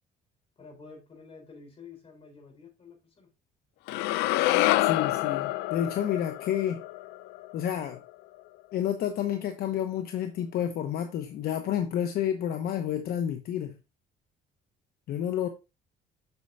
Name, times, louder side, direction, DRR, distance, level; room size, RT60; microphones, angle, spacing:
voice 1, 0.6-3.3, left 4 dB, 35° left, 3.9 m, -50 dB
sound 1, 3.9-8.1, left 17 dB, 90° left, 0.4 m, -27 dB
voice 2, 4.8-6.8 7.5-8.0 8.7-13.7 15.1-15.5, left 10 dB, 65° left, 0.9 m, -30 dB
8.1 x 6.6 x 2.6 m
cardioid pair, 110°, 17 cm